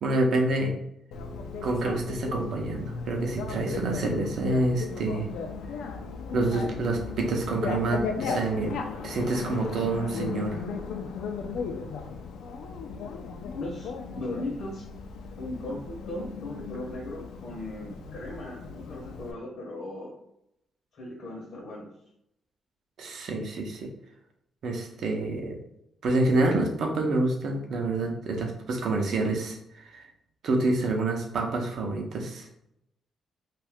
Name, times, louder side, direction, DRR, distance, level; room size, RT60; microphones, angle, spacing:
voice 1, 0.0-0.8 1.6-5.3 6.3-8.7 9.0-10.6 23.0-23.9 24.6-25.6 26.0-30.1 30.4-32.5, right 2 dB, 60° right, 2 dB, 0.6 m, -27 dB
Bicycle, 1.1-19.3, left 5 dB, 90° left, 0.4 m, -36 dB
voice 2, 13.5-14.8 15.4-20.1 20.9-21.9, left 1 dB, 55° left, -2 dB, 0.7 m, -37 dB
2.6 x 2.4 x 3.4 m, 0.78 s
cardioid pair, 150°, 0 cm